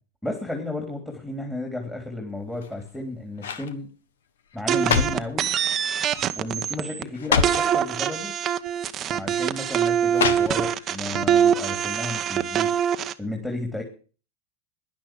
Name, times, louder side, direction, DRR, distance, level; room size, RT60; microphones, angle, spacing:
voice 1, 0.2-3.9 4.5-5.5 6.3-8.3 9.0-12.7 13.2-13.8, left 2 dB, 5° left, 1 dB, 3.4 m, -33 dB
sound 1, 2.5-3.0 3.4-3.7 4.5-5.3 6.1-6.4 6.7-6.8 7.1-7.7 8.7-8.8 10.1-10.9 11.3-11.4, left 6 dB, 85° left, 1.4 m, -26 dB
sound 2, 4.7-7.0 7.4-13.1, right 9 dB, 35° right, 1.0 m, -24 dB
10.5 x 10.5 x 7.6 m, 0.38 s
hypercardioid pair, 110°, 0 cm